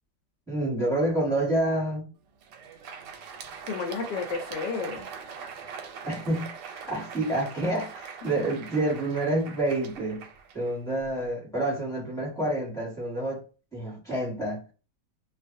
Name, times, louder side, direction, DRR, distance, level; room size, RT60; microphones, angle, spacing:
voice 1, 0.5-2.1 6.0-6.5 6.9-10.2 10.5-13.4 13.7-14.6, right 1 dB, ahead, 1.2 m, -28 dB
Crowd, 2.3-11.2, right 6 dB, 85° right, 1.3 m, -42 dB
voice 2, 3.6-5.1, left 5 dB, 75° left, 1.2 m, -32 dB
2.6 x 2.4 x 2.5 m
omnidirectional pair, 1.9 m